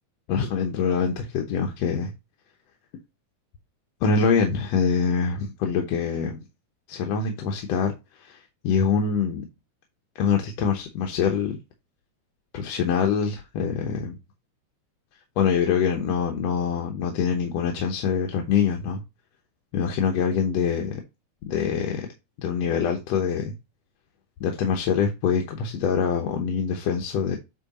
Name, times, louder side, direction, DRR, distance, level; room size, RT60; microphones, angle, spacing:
voice 1, 0.3-2.1 4.0-6.5 6.9-9.5 10.2-11.6 12.5-14.2 15.4-19.0 19.7-21.0 21.5-22.1 22.4-23.5 24.4-27.4, left 6 dB, 65° left, 2.0 m, -24 dB
8.6 x 3.4 x 4.1 m
omnidirectional pair, 3.4 m